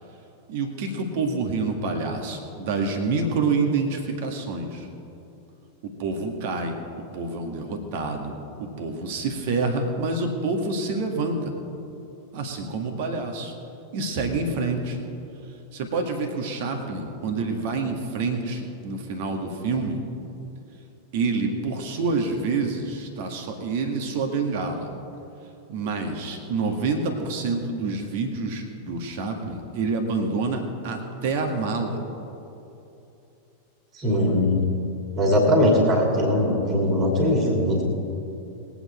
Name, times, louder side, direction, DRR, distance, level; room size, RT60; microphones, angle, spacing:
voice 1, 0.5-4.9 5.8-6.8 7.1-8.3 8.6-11.5 12.3-13.5 13.9-15.0 15.7-20.0 21.1-24.9 25.7-32.0, right 3 dB, 50° right, 4 dB, 1.9 m, -27 dB
voice 2, 33.9-34.7 35.2-37.8, left 1 dB, 30° right, 0 dB, 2.8 m, -20 dB
21.5 x 8.9 x 4.4 m, 2.8 s
figure-of-eight pair, 90°, 0 cm